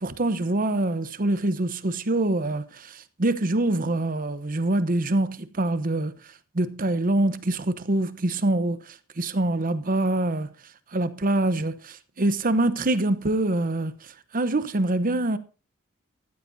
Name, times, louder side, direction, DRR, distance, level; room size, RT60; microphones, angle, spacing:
voice 1, 0.0-6.1 6.5-8.8 9.2-10.5 10.9-13.9 14.3-15.4, right 2 dB, 40° right, 0.9 m, -25 dB
14.5 x 13.0 x 2.7 m
head